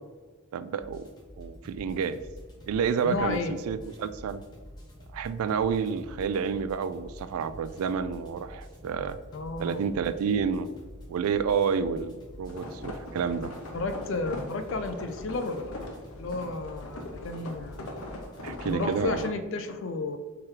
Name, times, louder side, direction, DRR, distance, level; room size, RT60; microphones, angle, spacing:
voice 1, 0.5-1.1 1.4-2.2 2.7-4.4 5.1-9.2 9.6-10.7 11.1-13.5 18.4-19.3, right 6 dB, 90° right, 15 dB, 0.3 m, -29 dB
sound 1, 0.8-19.3, equal, 20° left, 1.0 m, -47 dB
voice 2, 3.0-3.6 9.3-9.8 13.7-15.7 16.2-17.8 18.6-20.2, left 3 dB, 65° left, 9 dB, 0.4 m, -32 dB
sound 2, 12.5-19.0, left 1 dB, 90° left, 0.8 m, -41 dB
3.7 x 3.2 x 4.4 m, 1.4 s
head